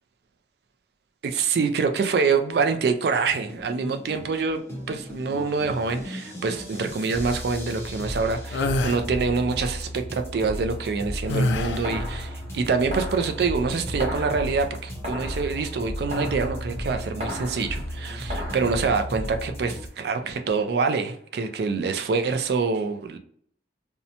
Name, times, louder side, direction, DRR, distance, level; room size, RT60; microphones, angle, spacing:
voice 1, 1.2-4.6 4.9-23.2, right 4 dB, 65° right, 6 dB, 0.3 m, -26 dB
sound 1, 3.3-19.9, equal, 15° left, 0.5 m, -34 dB
sound 2, 8.5-9.0 11.3-12.0, left 2 dB, 85° left, 0.3 m, -25 dB
sound 3, 11.2-18.7, equal, 40° right, 0.9 m, -37 dB
2.6 x 2.1 x 2.7 m, 0.63 s
head